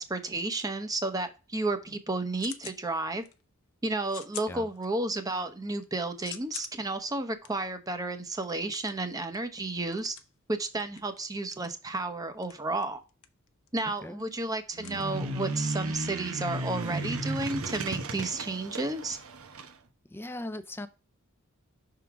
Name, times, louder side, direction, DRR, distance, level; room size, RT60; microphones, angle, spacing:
voice 1, 0.0-3.2 3.8-10.2 10.5-13.0 13.7-19.2, right 2 dB, 15° right, 0.7 m, -32 dB
sound 1, 2.3-2.8 3.2-3.6 4.0-5.2 5.6-15.7, left 11 dB, 85° left, 0.7 m, -48 dB
sound 2, 14.7-19.7, right 2 dB, 80° right, 0.9 m, -34 dB
voice 2, 20.1-20.9, left 1 dB, 10° left, 0.5 m, -38 dB
5.9 x 3.8 x 4.6 m
head